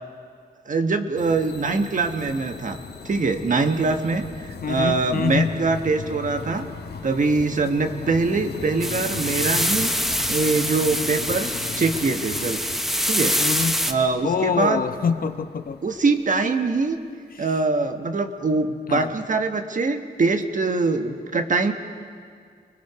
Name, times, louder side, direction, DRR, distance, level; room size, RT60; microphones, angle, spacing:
voice 1, 0.7-2.8 3.0-6.7 7.0-9.9 10.3-11.5 11.8-12.6 13.0-13.4 13.9-14.8 15.8-17.0 17.4-21.7, right 3 dB, 50° right, 6 dB, 1.3 m, -23 dB
sound 1, 1.2-16.5, left 5 dB, 75° left, 1.3 m, -38 dB
voice 2, 4.6-5.6 13.4-13.8 14.2-15.8 18.9-19.1, left 6 dB, 60° left, 9 dB, 0.9 m, -25 dB
sound 2, 8.8-13.9, equal, ahead, 0.9 m, -25 dB
29.5 x 21.5 x 4.8 m, 2.1 s
wide cardioid pair, 130°, 17 cm